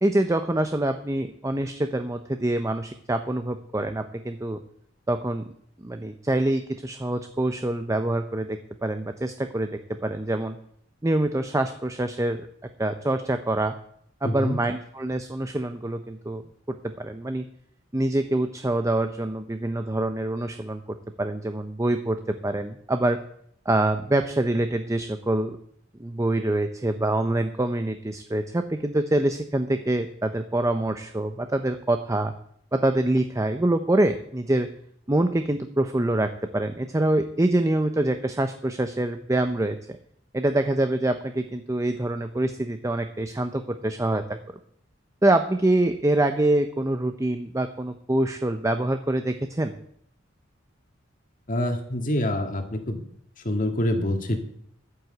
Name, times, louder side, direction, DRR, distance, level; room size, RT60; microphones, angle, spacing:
voice 1, 0.0-4.6 5.1-5.5 5.8-10.6 11.0-12.4 12.8-13.7 14.2-16.4 16.8-17.4 17.9-23.2 23.7-25.6 26.0-32.3 32.7-34.7 35.1-40.0 40.3-44.2 45.2-49.8, right 1 dB, 15° right, 8 dB, 0.7 m, -25 dB
voice 2, 14.2-14.6 51.5-53.0 53.4-54.4, left 1 dB, 45° left, 5 dB, 2.0 m, -26 dB
11.0 x 9.7 x 7.9 m, 0.68 s
head